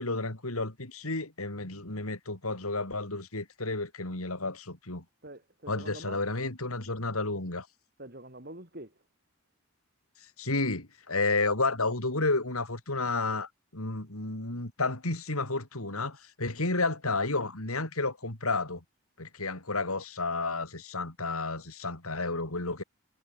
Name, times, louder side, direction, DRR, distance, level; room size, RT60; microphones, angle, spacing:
voice 1, 0.0-5.0 5.7-7.7 10.4-18.8 19.2-22.8, left 3 dB, 85° left, 4.3 m, -31 dB
voice 2, 5.2-6.2 8.0-9.0, right 1 dB, 45° right, 4.7 m, -45 dB
head